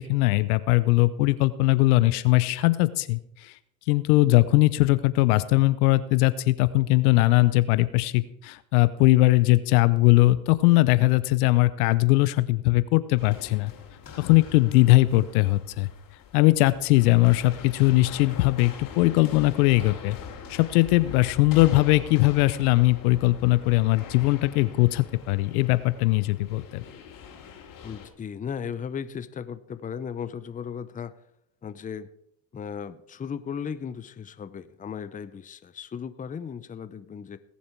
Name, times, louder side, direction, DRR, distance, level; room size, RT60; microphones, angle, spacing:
voice 1, 0.0-3.5 3.9-13.7 14.2-15.9 16.3-20.2 20.5-26.8, left 19 dB, 75° left, 16 dB, 0.8 m, -20 dB
sound 1, 13.2-28.1, left 7 dB, 45° left, 3.0 m, -43 dB
voice 2, 27.8-31.1 31.6-32.1 32.5-37.4, left 7 dB, 20° left, 13 dB, 0.7 m, -36 dB
19.5 x 7.2 x 4.6 m, 0.75 s
hypercardioid pair, 90°, 45 cm